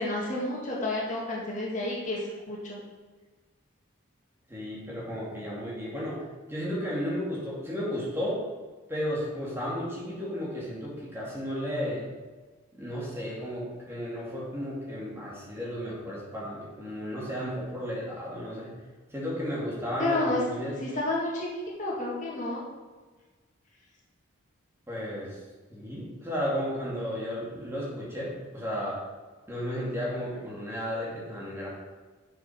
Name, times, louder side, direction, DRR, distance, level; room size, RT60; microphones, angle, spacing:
voice 1, 0.0-2.8 20.0-20.4 20.8-21.5 21.8-22.6, left 2 dB, 35° left, -4 dB, 2.1 m, -30 dB
voice 2, 4.5-8.4 8.9-12.1 12.7-18.7 19.1-20.2 20.5-20.8 24.9-25.4 25.7-29.0 29.5-31.7, equal, 10° right, -5 dB, 2.4 m, -33 dB
7.5 x 7.1 x 5.6 m, 1.3 s
head